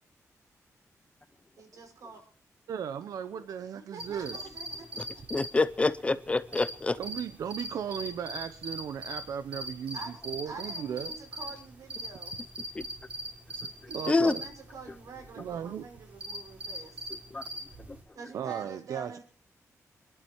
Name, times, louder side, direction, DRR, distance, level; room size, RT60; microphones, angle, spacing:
voice 1, 1.6-2.2 3.7-5.2 9.9-10.2 10.5-12.4 14.2-17.1 18.1-19.2, right 5 dB, 75° right, 5.8 m, -46 dB
voice 2, 2.7-4.5 7.0-10.0 10.2-11.2 13.9-14.4 15.4-15.9 18.3-19.2, right 8 dB, 90° right, 0.8 m, -36 dB
sound 1, 4.0-18.0, equal, 20° right, 5.0 m, -41 dB
voice 3, 5.3-7.0 12.7-12.8 14.1-14.3 17.3-17.4, left 3 dB, 20° left, 0.7 m, -26 dB
27.0 x 11.0 x 4.7 m
wide cardioid pair, 145°, 6 cm